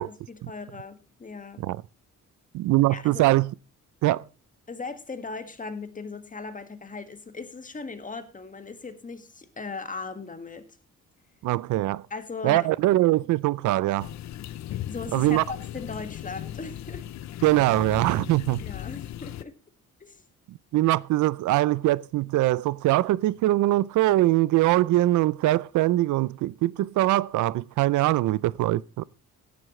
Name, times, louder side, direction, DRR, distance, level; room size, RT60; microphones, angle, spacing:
voice 1, 0.0-1.6 2.9-3.3 4.7-10.7 12.1-12.7 14.9-17.1 18.6-19.5 20.0-20.2, left 4 dB, 25° left, 1.8 m, -38 dB
voice 2, 2.5-3.5 4.0-4.3 11.4-12.0 12.4-14.1 15.1-15.4 17.4-18.6 20.5-29.0, right 16 dB, 80° right, 0.5 m, -22 dB
sound 1, 14.0-19.4, left 12 dB, 65° left, 0.6 m, -37 dB
16.5 x 11.5 x 3.2 m
cardioid pair, 90°, 30 cm